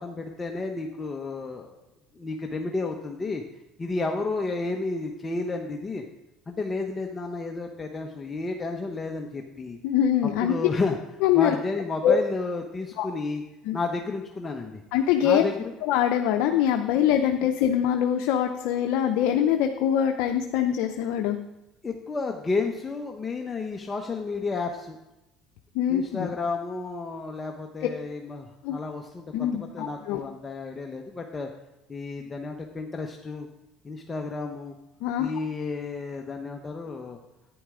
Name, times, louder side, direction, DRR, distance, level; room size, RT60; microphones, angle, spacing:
voice 1, 0.0-1.8 2.1-3.4 3.8-6.0 6.5-9.8 10.4-11.0 11.3-13.4 13.7-14.8 15.2-15.7 21.8-25.0 25.9-29.3 29.5-31.5 31.9-33.5 33.8-34.8 35.2-37.2, left 3 dB, 25° left, 3 dB, 0.9 m, -31 dB
voice 2, 9.8-10.5 11.2-11.6 12.0-12.2 13.0-13.1 13.7-13.8 14.9-15.4 15.8-21.4 25.7-26.3 27.8-27.9 28.6-28.8 29.3-30.2 35.0-35.3, left 10 dB, 75° left, 4 dB, 0.6 m, -23 dB
11.0 x 9.5 x 3.7 m, 0.95 s
supercardioid pair, 100°, 0 cm